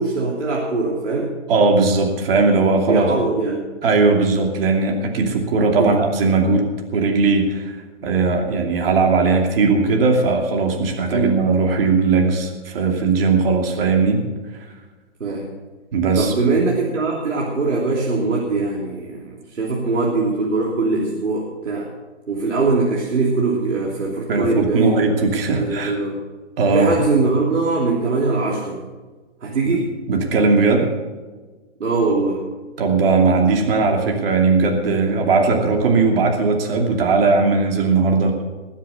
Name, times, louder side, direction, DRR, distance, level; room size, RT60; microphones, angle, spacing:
voice 1, 0.0-1.4 2.9-3.7 5.7-6.0 11.1-11.4 15.2-15.5 16.2-21.9 22.3-25.0 25.5-26.2 26.7-28.8 29.4-29.9 31.8-32.4, right 3 dB, 90° right, -2 dB, 3.3 m, -21 dB
voice 2, 1.5-3.1 3.8-7.7 8.0-14.2 15.9-16.3 24.3-25.9 26.6-26.9 29.7-29.8 30.1-30.9 32.8-38.4, right 4 dB, 50° right, 2 dB, 2.8 m, -18 dB
20.5 x 7.4 x 6.7 m, 1.3 s
hypercardioid pair, 150°, 36 cm